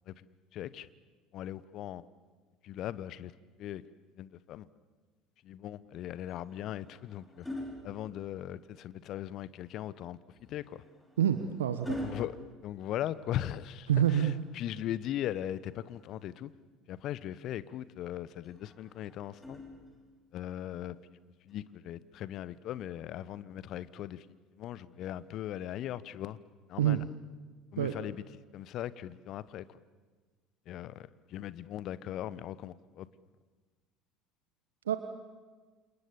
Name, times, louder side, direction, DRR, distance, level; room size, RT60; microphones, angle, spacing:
voice 1, 0.5-0.9 1.3-2.0 2.6-3.3 3.6-3.8 4.2-4.7 5.4-7.5 7.8-10.8 12.0-12.3 12.6-16.5 16.9-19.8 20.3-21.2 21.4-26.4 26.7-27.1 27.7-28.2 28.5-29.8 30.7-33.1, left 12 dB, 50° left, 17 dB, 1.1 m, -39 dB
sound 1, 6.3-8.8 10.3-13.5 15.3-16.5 18.4-20.3 21.5-21.7, left 1 dB, 10° left, 5.7 m, -45 dB
voice 2, 11.2-12.0 13.9-14.4 26.8-27.0 27.8-27.9 34.9-35.0, right 10 dB, 75° right, 9 dB, 1.1 m, -27 dB
29.5 x 28.0 x 7.2 m, 1.4 s
figure-of-eight pair, 65°, 0 cm